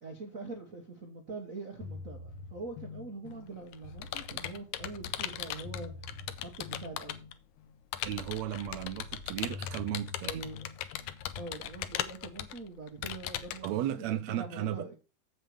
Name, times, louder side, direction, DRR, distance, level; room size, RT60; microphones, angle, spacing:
voice 1, 0.0-5.9 6.4-7.2 10.2-10.7 11.3-15.0, right 3 dB, 50° right, 1.0 m, -44 dB
sound 1, 1.8-11.6, left 3 dB, 60° left, 1.6 m, -47 dB
Computer keyboard, 3.3-7.3 7.9-13.7, left 12 dB, 75° left, 2.0 m, -38 dB
voice 2, 8.0-10.4 13.6-14.9, right 11 dB, 75° right, 1.8 m, -35 dB
7.9 x 7.3 x 5.0 m
omnidirectional pair, 3.6 m